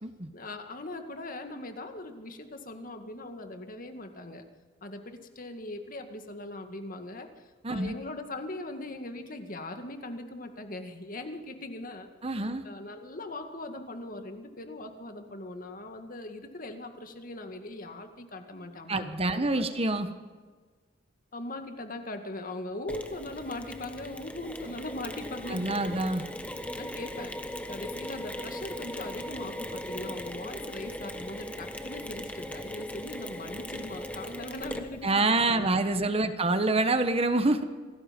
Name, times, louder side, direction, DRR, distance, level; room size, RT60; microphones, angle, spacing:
voice 1, 0.3-4.4 4.8-12.1 12.6-19.9 21.3-26.0 26.6-27.3 27.7-35.7 36.1-36.3, left 2 dB, 50° left, 6 dB, 2.1 m, -40 dB
voice 2, 7.6-7.9 12.2-12.6 18.9-20.1 25.5-26.2 35.0-37.6, right 2 dB, 30° right, 9 dB, 1.3 m, -26 dB
Mechanisms, 22.9-35.2, left 1 dB, 5° left, 1.3 m, -39 dB
26.5 x 19.0 x 5.3 m, 1.4 s
head